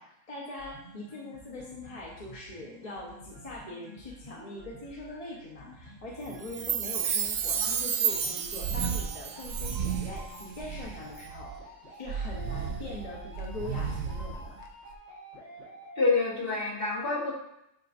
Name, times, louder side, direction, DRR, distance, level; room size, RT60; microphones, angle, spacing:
voice 1, 0.0-11.6 11.9-14.6, left 2 dB, 30° left, -3 dB, 1.0 m, -42 dB
sound 1, 0.6-16.6, equal, 70° left, 2.1 m, -50 dB
Chime, 6.4-10.1 10.3-10.4, right 7 dB, 60° right, 0.6 m, -31 dB
sound 2, 8.4-9.1 9.4-11.6 12.1-14.9, right 6 dB, 80° right, 1.0 m, -35 dB
voice 2, 16.0-17.3, left 3 dB, 45° left, -4 dB, 1.6 m, -27 dB
9.3 x 4.0 x 2.6 m, 0.78 s
omnidirectional pair, 1.3 m